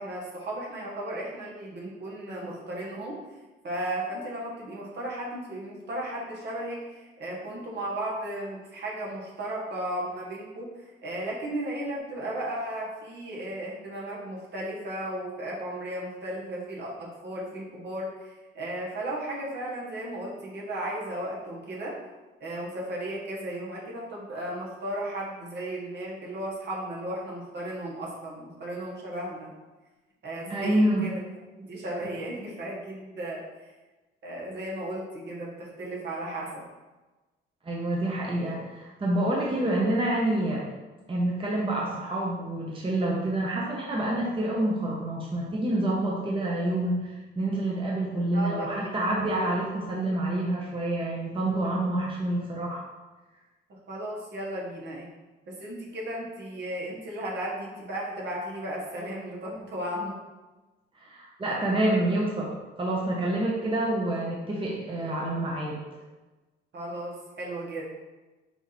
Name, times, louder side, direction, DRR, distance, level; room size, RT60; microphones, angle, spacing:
voice 1, 0.0-3.2 3.6-22.0 22.4-29.5 30.2-31.2 31.6-33.7 34.2-36.6 48.3-48.9 53.7-55.1 55.5-60.2 61.6-61.7 66.7-67.9, right 1 dB, 60° right, -3 dB, 1.4 m, -35 dB
voice 2, 30.5-31.0 37.6-40.6 41.1-52.8 60.9-62.5 62.8-65.8, right 1 dB, 25° right, -3 dB, 0.9 m, -27 dB
4.6 x 2.7 x 4.1 m, 1.2 s
cardioid pair, 90°, 20 cm